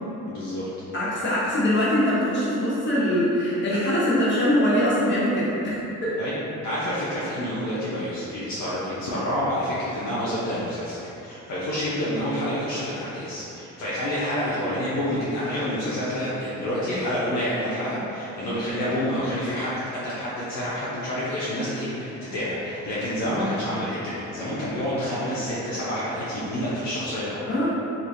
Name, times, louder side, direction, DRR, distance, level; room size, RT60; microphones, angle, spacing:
voice 1, 0.3-0.7 6.2-27.5, equal, 65° left, -9 dB, 0.6 m, -28 dB
voice 2, 0.9-6.2 27.5-27.7, equal, 40° left, -9 dB, 1.0 m, -23 dB
3.0 x 2.5 x 2.5 m, 3.0 s
cardioid pair, 90°, 30 cm